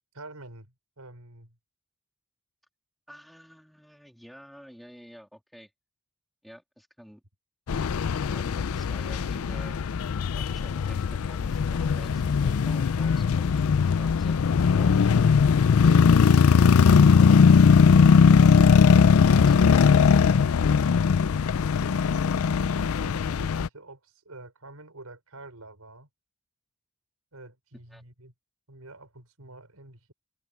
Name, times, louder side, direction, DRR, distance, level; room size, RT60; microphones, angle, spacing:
voice 1, 0.1-0.7 1.0-1.6 21.6-26.1 27.3-28.3 28.7-30.1, right 2 dB, 80° right, 5.6 m, -47 dB
voice 2, 3.1-5.7 6.4-7.2 8.2-9.8 10.3-15.3 27.9-28.0, equal, ahead, 2.5 m, -49 dB
sound 1, 7.7-23.7, left 6 dB, 75° left, 0.4 m, -20 dB
head